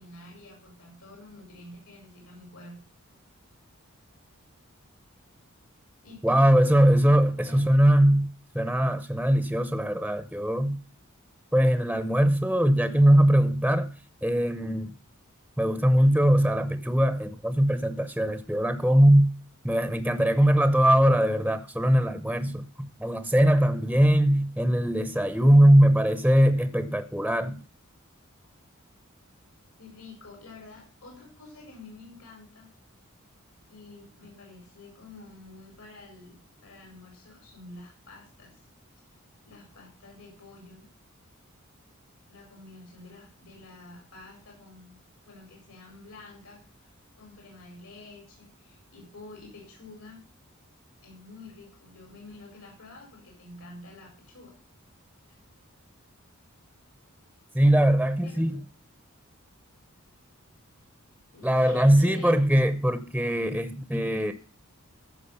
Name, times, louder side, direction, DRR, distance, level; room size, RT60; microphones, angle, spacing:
voice 1, 0.0-2.8 6.0-6.5 7.5-7.7 29.8-32.7 33.7-38.6 39.5-40.8 42.3-45.0 45.2-46.6 47.2-50.3 51.0-54.5 58.2-58.6 61.3-62.3, left 2 dB, 80° left, 4.9 m, -48 dB
voice 2, 6.2-8.3 8.5-10.8 11.5-13.9 14.2-14.9 15.6-19.3 19.6-27.6 57.5-58.6 61.4-64.3, equal, 5° right, 0.7 m, -21 dB
15.0 x 6.3 x 5.6 m
head